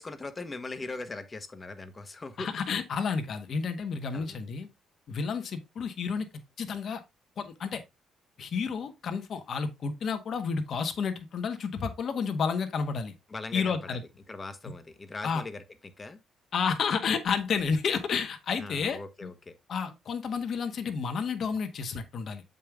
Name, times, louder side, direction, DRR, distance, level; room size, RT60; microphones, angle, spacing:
voice 1, 0.0-2.5 4.1-4.4 13.3-14.0 14.3-16.2 18.6-19.6, left 3 dB, 25° left, 1.3 m, -40 dB
voice 2, 2.4-4.7 5.1-6.3 6.6-7.0 7.4-7.8 8.4-13.1 13.5-14.0 15.2-15.4 16.5-19.3 19.7-22.4, left 5 dB, 60° left, 1.5 m, -31 dB
7.6 x 5.5 x 3.5 m
cardioid pair, 90°, 0 cm